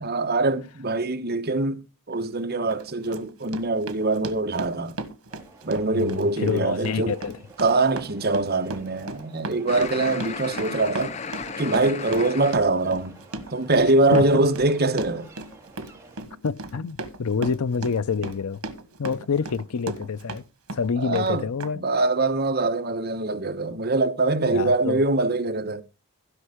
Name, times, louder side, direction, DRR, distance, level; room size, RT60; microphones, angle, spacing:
voice 1, 0.0-5.0 5.6-7.2 7.6-11.1 11.6-13.2 13.5-15.3 21.0-21.5 21.7-25.8, right 2 dB, 45° right, 1.0 m, -23 dB
Run, 2.1-2.2 2.7-20.4 20.7-21.3 21.6-21.7, right 2 dB, 80° right, 1.5 m, -36 dB
sound 1, 5.3-16.2, right 3 dB, 15° right, 2.3 m, -49 dB
voice 2, 5.9-7.4 14.1-14.5 16.4-18.6 19.0-20.4 20.7-21.8 24.5-25.0, left 5 dB, 80° left, 0.6 m, -27 dB
sound 2, 9.7-12.6, left 5 dB, 30° left, 0.5 m, -34 dB
16.0 x 5.4 x 4.9 m
head